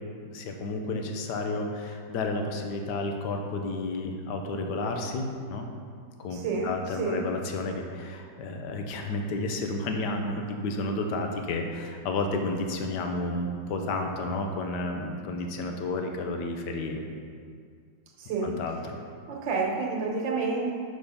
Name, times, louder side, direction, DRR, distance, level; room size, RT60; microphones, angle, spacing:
voice 1, 0.2-5.7 6.2-17.0 18.4-19.0, left 2 dB, 70° left, 3 dB, 1.3 m, -31 dB
voice 2, 6.3-6.7 7.0-7.2 18.2-18.5 19.3-20.7, right 4 dB, 80° right, 0 dB, 1.7 m, -29 dB
6.2 x 6.1 x 5.5 m, 2.2 s
omnidirectional pair, 2.0 m